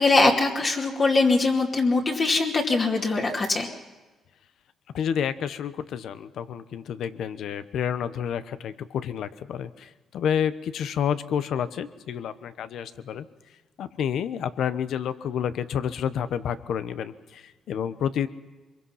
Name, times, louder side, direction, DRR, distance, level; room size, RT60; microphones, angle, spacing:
voice 1, 0.0-3.7, left 3 dB, 40° left, -1 dB, 2.5 m, -22 dB
voice 2, 4.9-13.3 13.8-18.3, left 8 dB, 75° left, 13 dB, 1.0 m, -29 dB
24.0 x 22.5 x 5.8 m, 1.2 s
cardioid pair, 90°, 0 cm